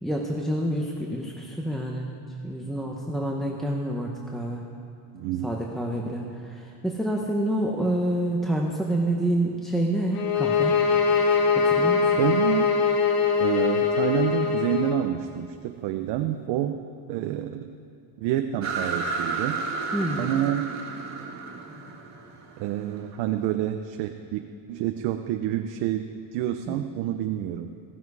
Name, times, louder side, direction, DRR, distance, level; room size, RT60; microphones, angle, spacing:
voice 1, 0.0-2.2 2.4-4.6 5.4-10.8 11.6-12.1 19.9-20.4 26.7-26.8, right 1 dB, ahead, -1 dB, 0.8 m, -28 dB
voice 2, 5.1-5.5 12.2-12.7 13.4-16.8 17.1-17.7 18.2-19.6 20.2-20.7 22.6-27.7, right 11 dB, 80° right, 6 dB, 0.7 m, -28 dB
sound 1, 10.1-15.0, left 5 dB, 60° left, 1.4 m, -22 dB
sound 2, 18.6-23.2, right 4 dB, 40° right, 1.9 m, -32 dB
15.5 x 13.0 x 4.8 m, 2.4 s
cardioid pair, 150°, 41 cm